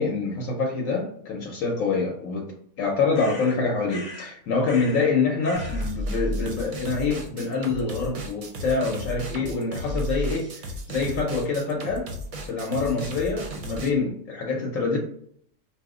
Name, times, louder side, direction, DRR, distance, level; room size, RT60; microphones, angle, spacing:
voice 1, 0.0-2.5 2.8-12.1 12.5-15.0, left 4 dB, 80° left, 1.1 m, -26 dB
sound 1, 3.1-4.3 4.6-5.1 5.4-5.9, left 2 dB, 55° left, 0.4 m, -40 dB
sound 2, 5.5-13.9, equal, 55° right, 0.6 m, -33 dB
2.9 x 2.0 x 3.6 m
omnidirectional pair, 1.4 m